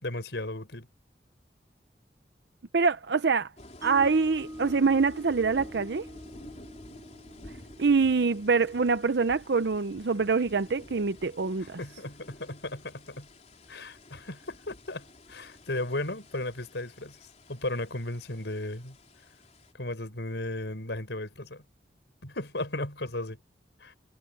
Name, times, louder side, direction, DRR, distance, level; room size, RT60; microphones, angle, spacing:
voice 1, 0.0-0.9 11.8-13.3 13.7-17.2 17.5-19.0 19.7-21.6 22.2-23.4 23.8-24.0, left 1 dB, 80° left, 5.0 m, -35 dB
voice 2, 2.7-3.5 3.8-6.1 7.8-11.8, right 4 dB, 75° right, 0.6 m, -25 dB
sound 1, 3.6-19.7, left 1 dB, 40° left, 4.3 m, -51 dB
Mallet percussion, 3.8-10.0, equal, 15° right, 1.6 m, -46 dB
head